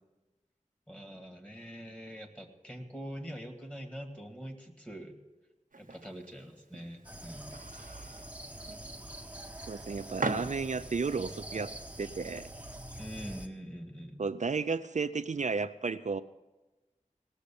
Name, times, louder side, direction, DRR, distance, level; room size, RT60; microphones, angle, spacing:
voice 1, 0.9-5.2 5.8-7.5 13.0-14.2, equal, 10° left, 3 dB, 2.0 m, -44 dB
sound 1, 5.7-11.1, right 3 dB, 85° right, 1.0 m, -41 dB
sound 2, 7.0-13.5, right 1 dB, 10° right, 1.1 m, -45 dB
voice 2, 9.6-11.7 12.0-12.5 14.2-16.2, right 4 dB, 60° right, 10 dB, 0.4 m, -33 dB
18.0 x 6.6 x 8.5 m, 1.1 s
wide cardioid pair, 55°, 14 cm